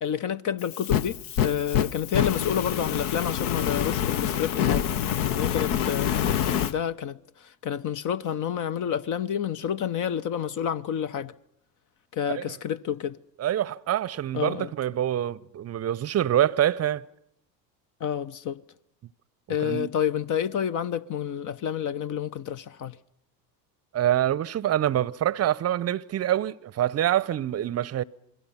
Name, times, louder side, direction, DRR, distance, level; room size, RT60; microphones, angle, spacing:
voice 1, 0.0-4.9 5.3-11.3 12.1-13.2 14.3-14.7 18.0-18.6 19.5-23.0, left 9 dB, 40° left, 0.8 m, -29 dB
Fire, 0.6-6.7, left 10 dB, 60° left, 1.1 m, -26 dB
voice 2, 13.4-17.1 19.6-19.9 23.9-28.0, right 11 dB, 30° right, 0.8 m, -25 dB
27.5 x 21.5 x 5.7 m
hypercardioid pair, 70°, 49 cm